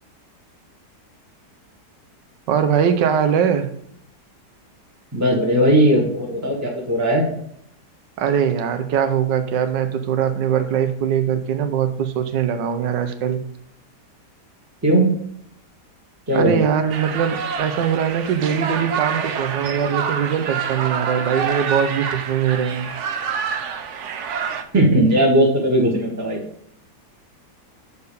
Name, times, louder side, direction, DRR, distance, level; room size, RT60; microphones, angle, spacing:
voice 1, 2.5-3.7 8.2-13.4 16.3-22.9, right 8 dB, 80° right, 9 dB, 1.5 m, -21 dB
voice 2, 5.1-7.3 14.8-15.1 16.3-16.5 24.7-26.4, right 1 dB, 10° right, -2 dB, 1.3 m, -17 dB
sound 1, 16.9-24.6, right 6 dB, 60° right, 0.8 m, -27 dB
6.8 x 4.5 x 6.8 m, 0.68 s
omnidirectional pair, 1.9 m